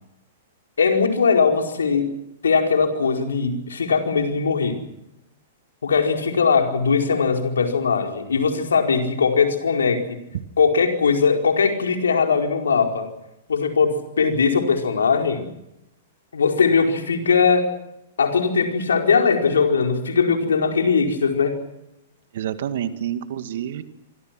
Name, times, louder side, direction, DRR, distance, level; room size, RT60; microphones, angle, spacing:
voice 1, 0.8-2.2 2.4-4.8 5.8-10.0 10.6-13.1 13.5-15.4 16.3-17.7 18.2-21.6, left 5 dB, 80° left, 3 dB, 4.8 m, -20 dB
voice 2, 22.3-23.8, right 10 dB, 65° right, 11 dB, 2.1 m, -28 dB
26.0 x 25.0 x 6.1 m, 0.85 s
hypercardioid pair, 110°, 0 cm